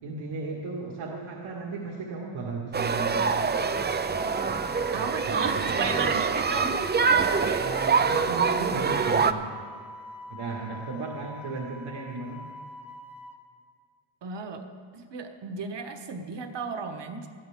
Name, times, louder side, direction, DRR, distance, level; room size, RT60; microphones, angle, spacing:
voice 1, 0.0-3.6 4.5-6.1 7.6-9.6 10.3-12.4, right 3 dB, 80° right, -3 dB, 2.0 m, -36 dB
sound 1, 2.7-9.3, right 5 dB, 25° right, 0.4 m, -25 dB
Wind instrument woodwind instrument, 3.5-13.4, equal, 5° right, 0.7 m, -45 dB
voice 2, 4.9-6.8 7.4-7.7 14.2-14.7 14.9-17.3, right 5 dB, 60° right, 5 dB, 1.4 m, -34 dB
20.0 x 14.0 x 3.6 m, 2.2 s
wide cardioid pair, 170°, 48 cm